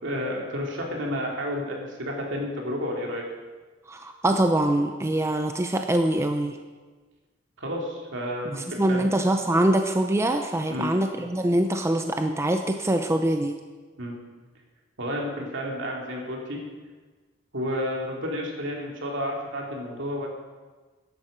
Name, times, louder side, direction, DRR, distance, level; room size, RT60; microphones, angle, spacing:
voice 1, 0.0-3.2 7.6-9.1 10.7-10.9 14.0-14.1 15.0-16.6 17.5-20.3, equal, 65° right, -1 dB, 2.8 m, -31 dB
voice 2, 3.9-6.6 8.5-13.5, right 1 dB, 15° right, 5 dB, 0.6 m, -24 dB
14.0 x 11.0 x 5.1 m, 1.3 s
head